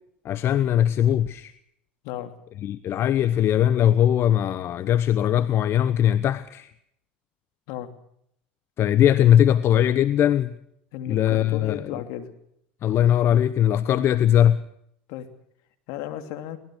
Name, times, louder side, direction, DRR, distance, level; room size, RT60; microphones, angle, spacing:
voice 1, 0.2-1.5 2.6-6.7 8.8-10.5 11.0-11.8 12.8-14.6, left 10 dB, 45° left, 1.0 m, -20 dB
voice 2, 10.9-12.3 15.1-15.2 15.9-16.6, left 11 dB, 60° left, 2.9 m, -34 dB
23.5 x 19.0 x 6.4 m
hypercardioid pair, 90°, 6 cm